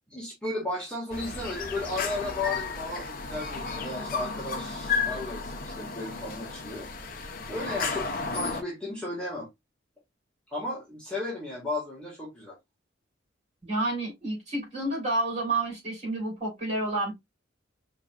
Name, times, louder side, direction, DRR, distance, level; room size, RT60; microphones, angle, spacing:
voice 1, 0.1-6.9 7.5-9.5 10.5-12.6, left 2 dB, 5° left, 1.8 m, -35 dB
sound 1, 1.1-8.6, left 5 dB, 50° left, 0.9 m, -33 dB
voice 2, 13.6-17.1, right 2 dB, 35° right, 3.2 m, -29 dB
5.0 x 3.2 x 2.3 m
head